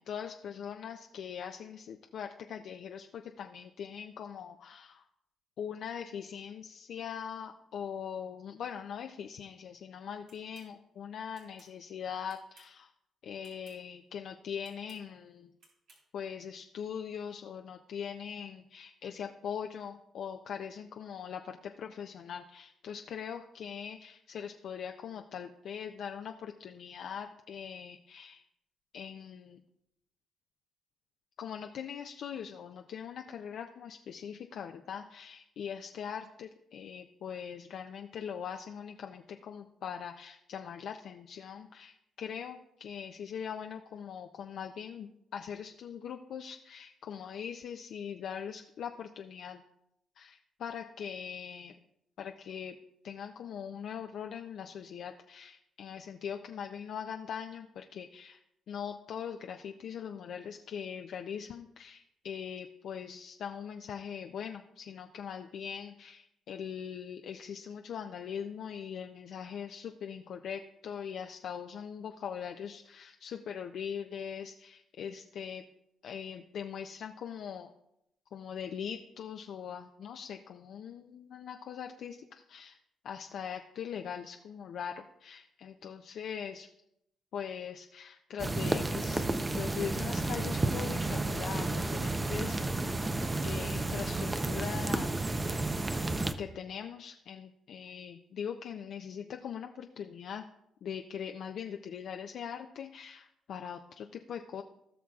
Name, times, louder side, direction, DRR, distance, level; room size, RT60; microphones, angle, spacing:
voice 1, 0.0-5.0 5.6-12.9 13.2-15.5 16.1-28.4 28.9-29.6 31.4-49.6 50.2-51.8 52.2-52.8 53.0-58.4 58.7-75.6 76.0-77.7 78.3-82.8 83.0-86.7 87.3-89.2 89.5-93.0 93.4-95.5 96.4-100.5 100.8-104.6, left 8 dB, 70° left, 4 dB, 0.5 m, -41 dB
sound 1, 10.3-10.7 11.3-11.7 12.3-12.8 13.4-13.8 14.6-15.0 15.6-16.0, right 3 dB, 80° right, 3.0 m, -61 dB
sound 2, 88.4-96.3, right 2 dB, 25° right, 0.6 m, -32 dB
17.0 x 6.1 x 2.4 m, 0.81 s
cardioid pair, 90°, 0 cm